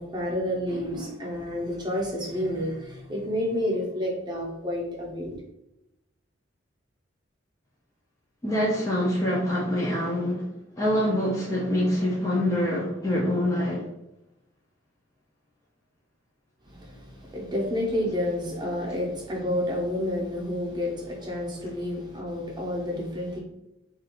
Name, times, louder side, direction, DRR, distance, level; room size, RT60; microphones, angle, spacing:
voice 1, 0.0-5.4 16.6-23.4, left 1 dB, 25° right, 0.6 m, -30 dB
voice 2, 8.4-10.5 10.8-13.9, left 1 dB, 15° left, 0.4 m, -25 dB
2.4 x 2.3 x 2.8 m
head